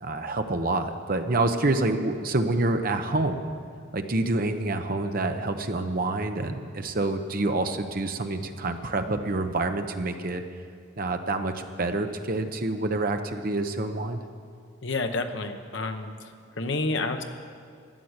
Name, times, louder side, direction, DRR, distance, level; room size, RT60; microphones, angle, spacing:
voice 1, 0.0-3.5 3.9-10.4 11.0-11.5 11.8-14.2, right 2 dB, 45° right, 7 dB, 0.8 m, -27 dB
voice 2, 14.8-16.3 16.6-17.2, left 3 dB, 60° left, 7 dB, 0.9 m, -29 dB
13.0 x 10.0 x 8.0 m, 2.3 s
head